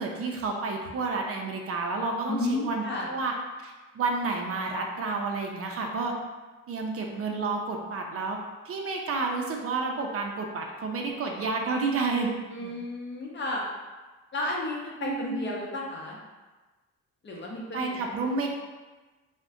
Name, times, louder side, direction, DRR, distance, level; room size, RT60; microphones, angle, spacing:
voice 1, 0.0-3.3 3.6-6.1 6.7-8.4 8.6-12.3 12.6-12.7 15.0-15.5 17.7-18.5, right 3 dB, 50° right, 1 dB, 0.5 m, -30 dB
voice 2, 2.3-3.2 12.5-13.7 14.3-16.2 17.2-18.4, left 2 dB, 40° left, -2 dB, 0.7 m, -33 dB
2.5 x 2.1 x 3.5 m, 1.2 s
cardioid pair, 90°, 30 cm